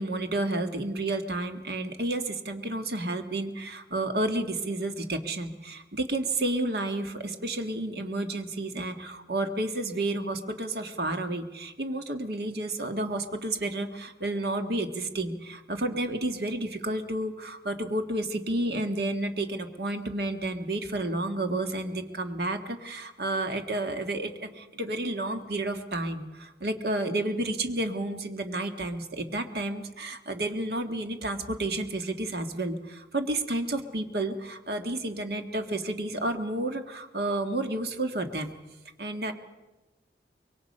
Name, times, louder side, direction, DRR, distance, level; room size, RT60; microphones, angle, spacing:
voice 1, 0.0-38.6 39.0-39.3, right 2 dB, 65° right, 6 dB, 1.7 m, -31 dB
25.0 x 22.5 x 5.5 m, 1.1 s
head